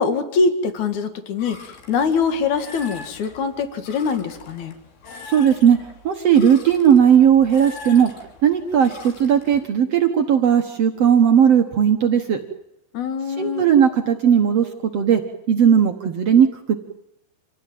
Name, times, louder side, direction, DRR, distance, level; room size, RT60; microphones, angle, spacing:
voice 1, 0.0-4.7 12.9-13.7, left 5 dB, 55° left, 9 dB, 3.0 m, -23 dB
sound 1, 1.4-9.7, left 4 dB, 75° left, 4.9 m, -42 dB
voice 2, 5.3-5.8 6.0-8.1 8.4-12.4 13.4-15.2 15.5-16.8, right 8 dB, 65° right, 4 dB, 1.6 m, -16 dB
27.0 x 17.0 x 9.2 m, 0.85 s
omnidirectional pair, 4.5 m